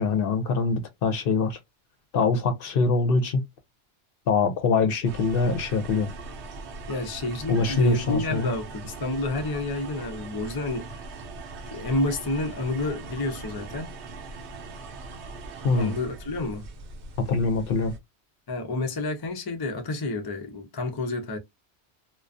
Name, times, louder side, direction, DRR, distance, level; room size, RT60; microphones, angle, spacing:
voice 1, 0.0-1.6 2.1-3.4 4.3-6.1 7.5-8.5 15.6-15.9 17.2-17.9, left 4 dB, 60° left, 0.7 m, -23 dB
sound 1, 5.0-18.0, right 3 dB, 75° right, 0.9 m, -40 dB
voice 2, 6.9-11.0 11.7-13.9 15.7-16.7 18.5-21.4, left 2 dB, 35° left, 0.3 m, -29 dB
2.3 x 2.2 x 2.4 m
omnidirectional pair, 1.2 m